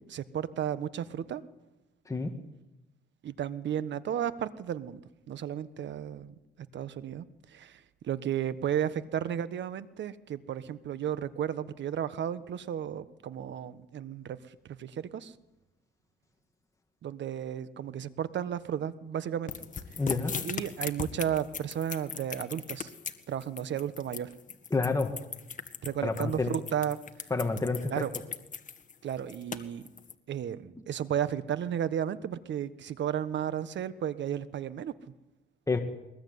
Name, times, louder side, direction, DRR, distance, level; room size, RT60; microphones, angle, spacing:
voice 1, 0.0-1.4 3.2-5.0 5.3-6.4 6.7-7.3 7.5-14.4 14.7-15.3 17.0-19.5 20.4-22.9 23.3-24.3 25.8-27.0 27.9-28.1 29.0-29.8 30.3-34.9, right 9 dB, 65° right, 14 dB, 1.4 m, -33 dB
sound 1, 19.5-30.1, left 6 dB, 40° left, 1.8 m, -38 dB
voice 2, 20.0-20.3 24.7-25.1 26.0-26.5 27.3-28.0 35.7-35.8, left 3 dB, 15° left, 4 dB, 2.4 m, -28 dB
22.0 x 20.5 x 9.6 m, 0.96 s
cardioid pair, 90°, 20 cm